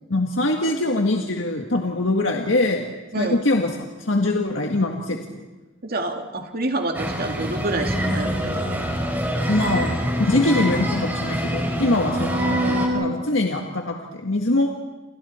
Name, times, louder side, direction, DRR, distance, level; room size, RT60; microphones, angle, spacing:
voice 1, 0.1-2.8 3.2-3.7 4.0-5.4 9.5-14.7, left 2 dB, 85° left, 2 dB, 1.7 m, -23 dB
voice 2, 5.8-8.6 9.7-9.9 10.3-10.5 12.1-13.2, right 1 dB, 50° right, 3 dB, 2.4 m, -27 dB
sound 1, 6.9-12.9, equal, 10° right, 3.9 m, -25 dB
29.0 x 28.0 x 4.4 m, 1.2 s
head